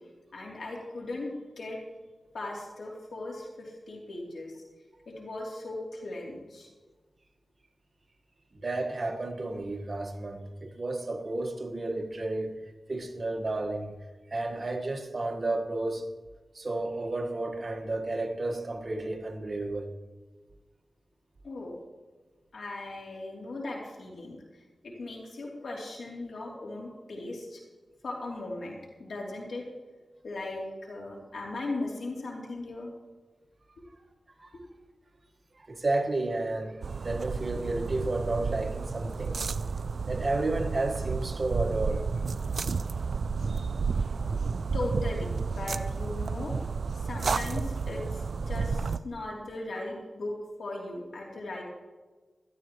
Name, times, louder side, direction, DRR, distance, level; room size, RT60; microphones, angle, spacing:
voice 1, 0.3-1.3 1.6-1.8 2.3-4.5 5.1-6.7 21.4-21.8 22.5-24.4 24.8-27.6 28.0-29.6 30.2-32.9 34.5-34.6 44.7-46.6 46.9-50.3 50.6-51.6, left 2 dB, 85° left, 3.1 m, -38 dB
voice 2, 8.5-12.6 12.9-13.9 14.3-16.1 16.5-19.9 34.4-34.5 35.6-39.4 40.1-42.1 43.5-43.7, right 2 dB, 50° right, 1.5 m, -32 dB
sound 1, 36.8-49.0, right 5 dB, 80° right, 0.4 m, -31 dB
16.5 x 13.0 x 3.1 m
cardioid pair, 50°, 0 cm